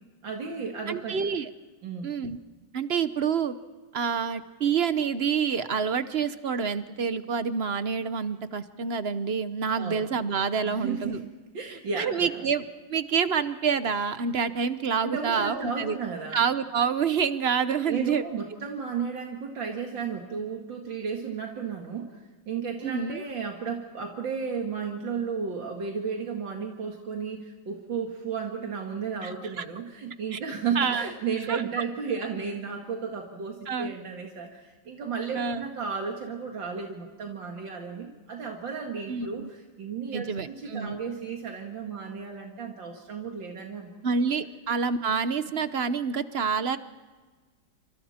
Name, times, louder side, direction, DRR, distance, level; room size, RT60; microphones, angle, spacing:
voice 1, 0.2-1.2 1.8-2.1 9.7-10.1 10.6-11.2 11.5-12.5 15.0-16.4 17.9-43.9, right 6 dB, 75° right, 1 dB, 2.6 m, -34 dB
voice 2, 0.9-1.5 2.0-2.4 2.7-3.5 3.9-11.2 12.0-12.6 12.9-16.0 16.3-18.2 22.8-23.2 29.2-29.3 29.6-29.7 30.3-30.4 30.8-31.1 31.5-31.6 33.7-33.9 35.3-35.7 39.1-39.5 40.1-41.0 44.0-46.8, right 6 dB, 50° right, 12 dB, 0.8 m, -27 dB
28.0 x 26.5 x 4.3 m, 1.3 s
omnidirectional pair, 2.1 m